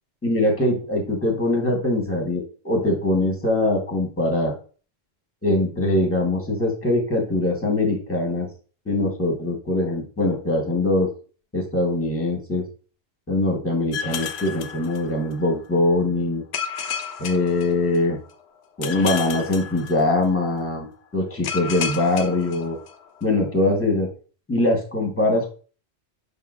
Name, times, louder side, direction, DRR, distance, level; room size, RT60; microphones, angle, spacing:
voice 1, 0.2-4.5 5.4-8.5 8.9-11.1 11.5-12.6 13.3-16.4 17.2-18.2 18.8-22.8 23.2-24.1 24.5-25.5, left 2 dB, 10° left, 1 dB, 1.2 m, -22 dB
sound 1, 13.9-15.5 16.5-18.3 18.8-20.5 21.4-23.2, left 7 dB, 70° left, 0.8 m, -32 dB
5.5 x 3.8 x 2.4 m, 0.38 s
omnidirectional pair, 1.1 m